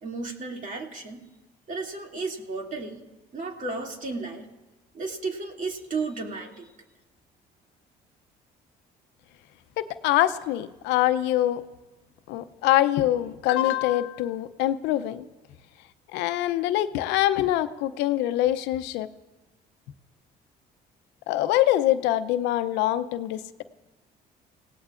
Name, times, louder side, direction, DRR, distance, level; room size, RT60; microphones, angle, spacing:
voice 1, 0.0-1.2 1.7-3.0 3.3-4.4 4.9-6.7, right 3 dB, 50° right, 1 dB, 2.5 m, -33 dB
voice 2, 9.8-11.6 12.3-15.2 16.1-19.1 21.3-23.6, left 14 dB, 85° left, 12 dB, 0.6 m, -24 dB
28.0 x 17.5 x 2.5 m, 1.1 s
supercardioid pair, 80°, 17 cm